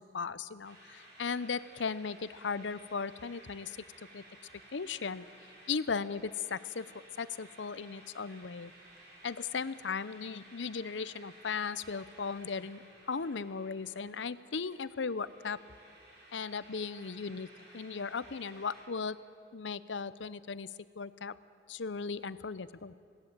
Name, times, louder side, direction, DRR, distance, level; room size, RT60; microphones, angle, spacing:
voice 1, 0.0-3.8 4.1-4.2 4.7-5.2 5.7-6.9 7.2-8.7 9.2-12.8 13.1-15.6 16.3-17.5 17.7-19.2 19.5-20.7 21.0-21.4 21.7-22.9, left 5 dB, 80° left, 16 dB, 0.7 m, -37 dB
sound 1, 0.6-18.8, right 1 dB, 60° right, 6.4 m, -56 dB
21.0 x 17.5 x 8.9 m, 2.4 s
head